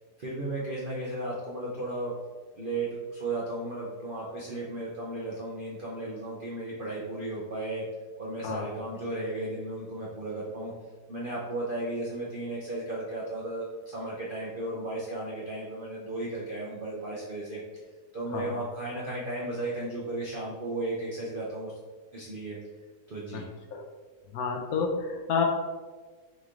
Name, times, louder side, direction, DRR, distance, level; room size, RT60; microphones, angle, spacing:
voice 1, 0.2-2.1 2.6-7.9 8.2-10.7 11.1-17.6 18.1-21.7 22.1-22.6 23.1-23.5, right 2 dB, 60° right, -5 dB, 0.5 m, -35 dB
voice 2, 24.3-25.4, left 5 dB, 70° left, 2 dB, 1.0 m, -29 dB
3.9 x 3.2 x 3.6 m, 1.4 s
omnidirectional pair, 1.8 m